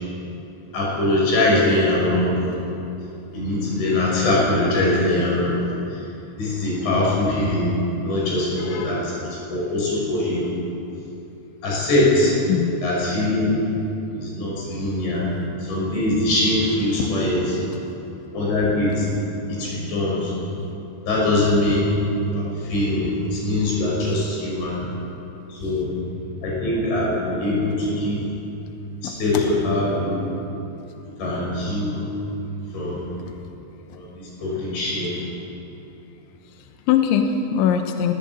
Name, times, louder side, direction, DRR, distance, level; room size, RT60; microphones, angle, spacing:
voice 1, 0.7-2.4 3.3-5.6 6.4-7.8 8.0-9.1 9.5-10.5 11.6-12.4 12.8-13.6 14.1-15.3 15.6-17.4 18.3-19.1 19.6-20.3 21.1-21.9 22.2-24.8 25.5-26.0 26.4-28.2 29.0-30.2 31.2-32.1 32.7-33.0 33.9-35.1, left 1 dB, 70° left, -4 dB, 8.0 m, -22 dB
voice 2, 8.6-9.0 12.5-12.8 17.0-17.1 29.0-29.5 33.3-33.4 33.9-34.0 36.5-38.1, left 8 dB, 85° left, 5 dB, 3.3 m, -23 dB
19.0 x 18.0 x 8.9 m, 2.9 s
omnidirectional pair, 5.4 m